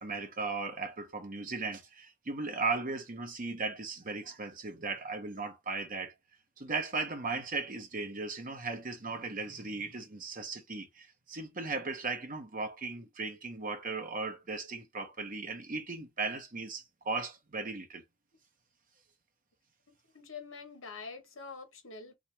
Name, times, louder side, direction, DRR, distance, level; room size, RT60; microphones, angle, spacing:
voice 1, 0.0-6.1 6.6-18.0, right 3 dB, 40° right, 0.9 m, -37 dB
voice 2, 20.1-22.1, left 4 dB, 65° left, 1.3 m, -45 dB
3.7 x 2.9 x 3.3 m
head